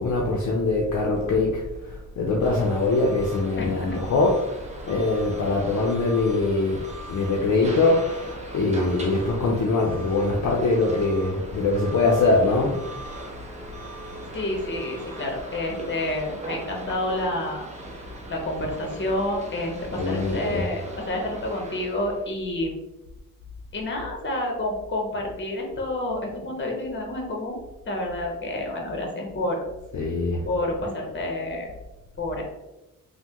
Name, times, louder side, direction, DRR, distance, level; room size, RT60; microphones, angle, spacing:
voice 1, 0.0-4.4 4.9-6.8 7.1-8.1 8.5-12.7 20.0-20.7 29.9-30.4, left 3 dB, 55° left, -1 dB, 0.6 m, -22 dB
sound 1, 2.4-22.3, right 1 dB, 20° right, 0.6 m, -39 dB
voice 2, 3.6-4.0 14.3-17.7 18.3-22.8 23.7-27.6 27.8-29.6 30.4-31.7 32.2-32.4, left 1 dB, 35° left, 1 dB, 0.9 m, -29 dB
3.2 x 2.1 x 2.9 m, 0.98 s
cardioid pair, 65°, 34 cm